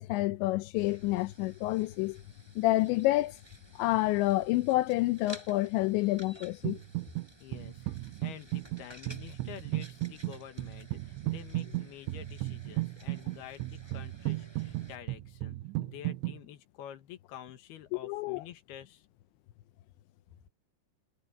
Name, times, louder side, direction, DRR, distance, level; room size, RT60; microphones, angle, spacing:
voice 1, 0.0-2.2 2.6-3.4 3.8-6.8 18.0-18.4, left 18 dB, 90° left, 3.1 m, -28 dB
sound 1, 0.8-14.9, equal, 5° right, 6.6 m, -55 dB
sound 2, 6.6-7.3 7.5-16.4, right 19 dB, 90° right, 3.0 m, -35 dB
voice 2, 7.4-19.1, left 10 dB, 70° left, 3.3 m, -49 dB
omnidirectional pair, 5.1 m